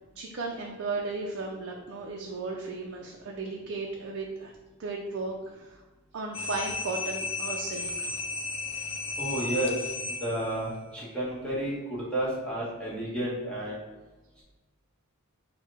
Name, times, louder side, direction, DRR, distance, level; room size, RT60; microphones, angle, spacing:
voice 1, 0.2-4.5 4.8-5.8 6.1-8.2, right 3 dB, 55° right, 0 dB, 0.4 m, -35 dB
sound 1, 6.3-10.6, left 4 dB, 25° left, 0.3 m, -34 dB
voice 2, 9.2-9.7 10.1-13.8, right 1 dB, 5° left, -8 dB, 1.1 m, -31 dB
4.6 x 2.1 x 4.7 m, 1.2 s
head